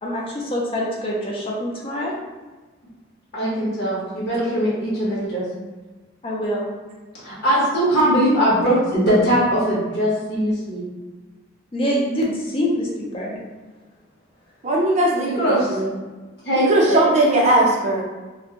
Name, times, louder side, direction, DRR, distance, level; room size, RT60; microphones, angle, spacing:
voice 1, 0.0-2.1 6.2-6.7 11.7-13.4, equal, 25° left, -3 dB, 0.3 m, -25 dB
voice 2, 3.3-5.4 7.2-10.8 15.2-15.8 16.4-17.1, equal, 55° left, -8 dB, 1.1 m, -20 dB
voice 3, 14.6-15.9 16.6-18.0, right 1 dB, 35° right, -2 dB, 0.4 m, -19 dB
2.5 x 2.0 x 2.8 m, 1.3 s
head